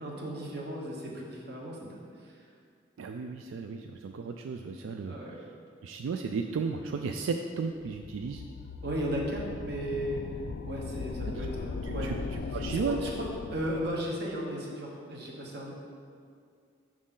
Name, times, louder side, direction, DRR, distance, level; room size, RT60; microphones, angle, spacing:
voice 1, 0.0-2.0 5.0-5.4 8.8-10.2 10.7-12.1 12.7-15.7, equal, 55° right, -2 dB, 1.2 m, -35 dB
voice 2, 3.0-5.2 5.8-8.4 11.4-11.5 11.8-13.0, right 5 dB, 90° right, 5 dB, 0.3 m, -34 dB
sound 1, 7.8-14.3, left 4 dB, 65° left, 0.3 m, -38 dB
6.3 x 6.2 x 3.8 m, 2.2 s
head